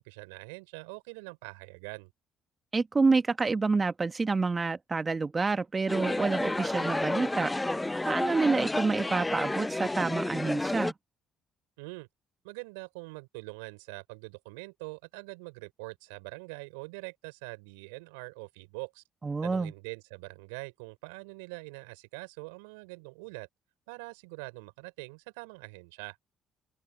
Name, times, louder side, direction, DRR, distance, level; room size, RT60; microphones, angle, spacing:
voice 1, 0.0-2.1 11.8-12.1 12.4-19.0 19.4-23.5 23.9-26.2, right 29 dB, 85° right, 5.1 m, -44 dB
voice 2, 2.7-7.8 8.1-10.9 19.2-19.7, right 4 dB, 30° right, 1.4 m, -28 dB
sound 1, 5.9-10.9, left 2 dB, 15° left, 0.5 m, -31 dB
open air
hypercardioid pair, 55°, 0 cm